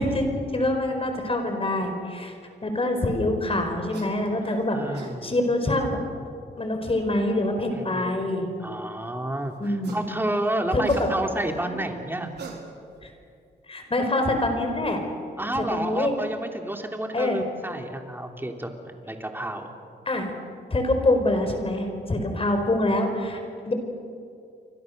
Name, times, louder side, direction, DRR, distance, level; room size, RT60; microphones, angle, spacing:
voice 1, 0.0-2.3 2.6-4.8 5.2-6.0 6.6-8.5 9.6-10.0 10.7-11.1 11.7-11.8 13.0-13.1 13.7-15.0 15.6-16.1 17.1-17.4 20.0-20.3 20.7-23.4 23.7-23.8, left 1 dB, 35° left, 5 dB, 4.9 m, -25 dB
sound 1, 3.9-4.1 4.7-5.2 6.6-6.7 9.6-10.1 10.5-11.5 12.2-13.0, right 5 dB, 80° right, 4.3 m, -42 dB
voice 2, 4.5-5.3 7.8-8.2 8.6-12.3 15.4-19.7, right 1 dB, 10° right, 3 dB, 3.2 m, -30 dB
30.0 x 24.5 x 6.7 m, 2.4 s
cardioid pair, 90°, 17 cm